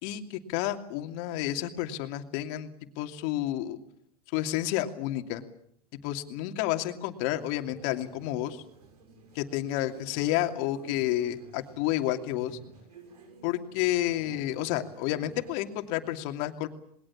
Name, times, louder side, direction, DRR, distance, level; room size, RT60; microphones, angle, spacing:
voice 1, 0.0-2.7 3.0-3.8 4.3-5.4 6.0-8.6 9.3-12.6 13.4-16.7, left 13 dB, 60° left, 6 dB, 2.7 m, -30 dB
sound 1, 7.3-15.6, right 3 dB, 90° right, 6.6 m, -52 dB
27.5 x 21.0 x 7.4 m, 0.70 s
hypercardioid pair, 110°, 20 cm